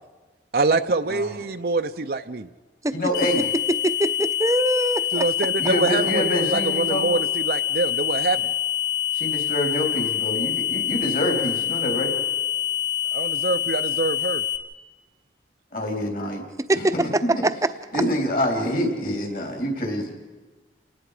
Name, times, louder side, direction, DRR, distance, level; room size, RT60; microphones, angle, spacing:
voice 1, 0.5-2.5 5.1-8.5 13.1-14.4, right 3 dB, 55° right, 7 dB, 0.6 m, -25 dB
voice 2, 2.9-3.5 5.6-7.1 9.1-12.1 15.7-16.4 16.7-16.8 17.2-17.4 17.9-20.1, equal, 50° left, 2 dB, 3.5 m, -26 dB
sound 1, 3.1-14.6, left 11 dB, 70° left, 1.8 m, -26 dB
voice 3, 3.7-5.3 16.7-17.7, right 1 dB, 20° right, 10 dB, 0.7 m, -23 dB
29.5 x 19.0 x 5.0 m, 1.2 s
head